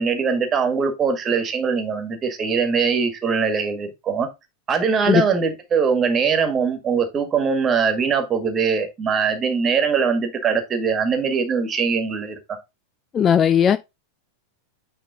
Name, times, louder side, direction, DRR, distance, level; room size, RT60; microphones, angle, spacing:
voice 1, 0.0-4.3 4.7-12.4, right 5 dB, 25° right, 1.8 m, -21 dB
voice 2, 13.1-13.8, left 8 dB, 25° left, 0.4 m, -16 dB
9.3 x 3.5 x 3.7 m
figure-of-eight pair, 90°, 0 cm